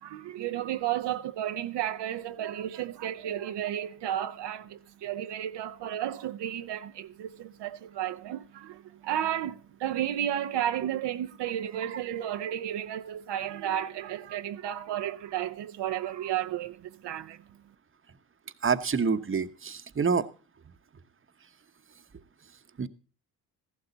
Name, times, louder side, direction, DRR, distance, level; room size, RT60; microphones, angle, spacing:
voice 1, 0.0-17.4, right 11 dB, 70° right, 0.8 m, -33 dB
voice 2, 18.6-20.3 22.8-22.9, right 5 dB, 30° right, 1.1 m, -27 dB
14.5 x 12.0 x 4.0 m
supercardioid pair, 55°, 44 cm